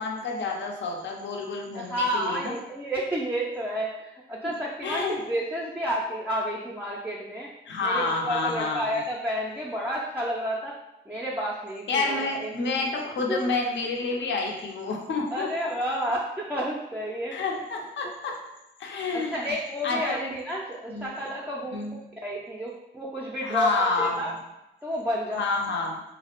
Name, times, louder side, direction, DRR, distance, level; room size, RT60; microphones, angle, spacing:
voice 1, 0.0-2.5 4.4-4.5 4.8-5.2 7.7-9.0 11.9-15.5 17.3-18.4 18.8-19.5 19.8-20.3 20.9-21.2 21.7-22.0 23.4-24.2 25.3-26.0, left 3 dB, 60° left, 0 dB, 0.5 m, -29 dB
voice 2, 1.7-7.5 7.8-10.7 11.1-12.5 13.3-13.5 15.3-17.4 19.1-21.8 22.2-24.3 24.8-25.4, equal, 5° right, -4 dB, 0.4 m, -30 dB
2.3 x 2.0 x 2.8 m, 0.93 s
supercardioid pair, 50°, 21 cm